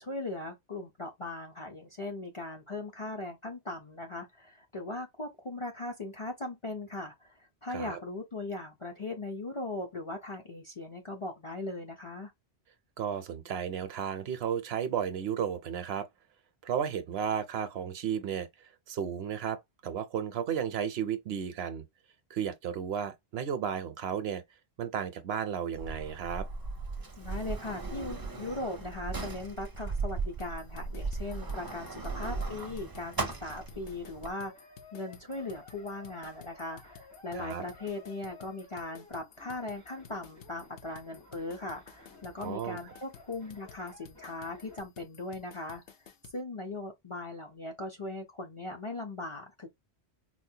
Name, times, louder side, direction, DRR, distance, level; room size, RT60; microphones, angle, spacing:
voice 1, 0.0-12.3 27.2-45.8 46.3-49.7, left 2 dB, 40° left, 0.5 m, -39 dB
voice 2, 7.7-8.0 13.0-16.1 16.6-21.8 22.3-24.4 24.8-26.5 37.3-37.6 42.4-42.8, right 8 dB, 70° right, 0.8 m, -33 dB
Sliding door, 25.7-34.3, right 4 dB, 30° right, 0.4 m, -37 dB
sound 1, 30.4-46.4, left 8 dB, 65° left, 0.8 m, -54 dB
sound 2, 33.6-44.8, left 2 dB, 80° left, 2.7 m, -55 dB
4.3 x 2.1 x 2.7 m
omnidirectional pair, 1.1 m